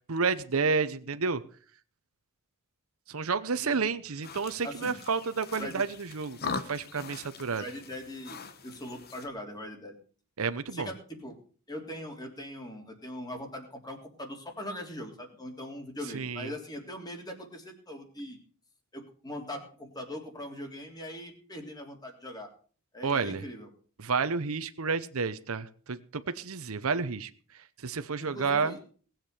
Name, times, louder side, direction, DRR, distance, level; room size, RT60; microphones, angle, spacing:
voice 1, 0.1-1.4 3.1-7.6 10.4-10.9 16.1-16.5 23.0-23.4 24.0-27.3 27.8-28.8, right 5 dB, 75° right, 11 dB, 0.8 m, -30 dB
sound 1, 4.2-9.3, left 5 dB, 45° left, 1.2 m, -41 dB
voice 2, 4.6-5.0 5.6-5.9 7.6-10.0 10.7-11.4 11.7-18.4 18.9-22.5 22.9-23.7 28.2-28.8, equal, 20° left, 3 dB, 3.3 m, -41 dB
19.0 x 7.5 x 6.8 m, 0.43 s
head